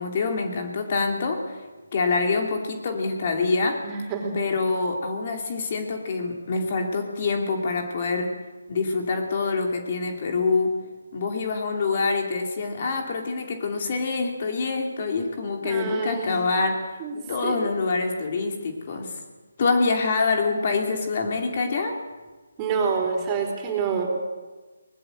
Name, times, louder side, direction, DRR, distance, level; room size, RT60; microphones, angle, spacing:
voice 1, 0.0-1.6 1.9-3.8 4.3-8.3 8.7-10.7 11.1-16.8 17.3-19.2 19.6-22.0, left 4 dB, 40° left, 3 dB, 2.8 m, -25 dB
voice 2, 3.8-4.3 15.6-16.3 17.0-17.7 22.6-24.1, right 5 dB, 20° right, 1 dB, 4.6 m, -27 dB
23.0 x 20.0 x 7.9 m, 1.3 s
figure-of-eight pair, 160°, 0 cm